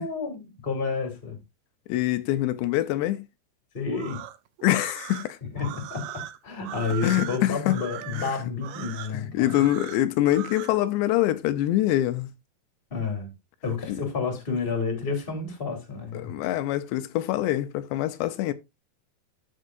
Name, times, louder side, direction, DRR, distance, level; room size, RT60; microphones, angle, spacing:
voice 1, 0.0-1.4 3.7-4.2 5.5-9.7 12.9-13.3 13.6-16.3, left 4 dB, 15° left, 2.3 m, -30 dB
voice 2, 1.9-3.2 4.6-5.4 7.0-7.8 8.2-8.4 9.1-12.3 13.9-14.0 16.1-18.5, left 14 dB, 85° left, 3.0 m, -25 dB
sound 1, 3.9-10.8, right 14 dB, 85° right, 2.0 m, -39 dB
14.0 x 5.5 x 2.6 m
omnidirectional pair, 4.9 m